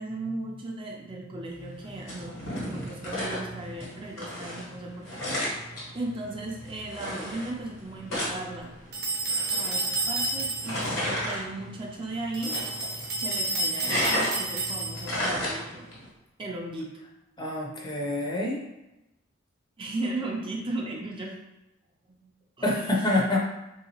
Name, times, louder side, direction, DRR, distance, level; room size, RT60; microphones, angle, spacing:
voice 1, 0.0-5.6 5.9-8.7 9.5-12.5 13.2-15.9 16.4-17.0 19.8-21.4 22.1-23.2, right 2 dB, 25° right, -1 dB, 0.4 m, -36 dB
sound 1, 1.6-16.1, left 1 dB, 85° left, 1.5 m, -34 dB
sound 2, 8.9-10.9 12.3-15.2, right 2 dB, 50° right, 0.8 m, -30 dB
voice 2, 17.4-18.6 22.6-23.4, left 1 dB, 20° left, -2 dB, 0.5 m, -26 dB
3.5 x 2.8 x 2.8 m, 0.95 s
head